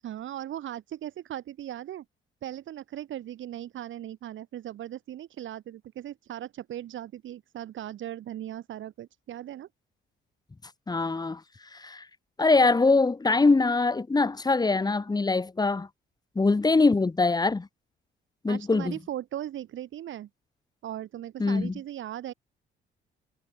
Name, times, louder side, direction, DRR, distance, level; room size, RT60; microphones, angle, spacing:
voice 1, 0.0-2.0 2.4-9.7 18.5-20.3 20.8-22.3, right 12 dB, 75° right, 7.2 m, -38 dB
voice 2, 10.9-11.4 11.7-12.0 12.4-15.9 16.3-17.7 18.4-19.0 21.4-21.7, left 3 dB, 20° left, 1.4 m, -23 dB
cardioid pair, 90°, 20 cm